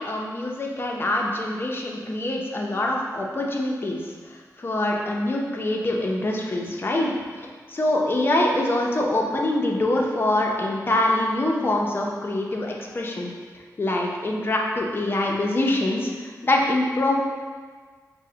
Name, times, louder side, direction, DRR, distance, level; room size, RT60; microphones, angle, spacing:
voice 1, 0.0-7.1 7.7-13.3 13.8-17.2, left 1 dB, 35° left, -1 dB, 0.5 m, -24 dB
5.4 x 2.0 x 3.7 m, 1.5 s
wide cardioid pair, 140°, 6 cm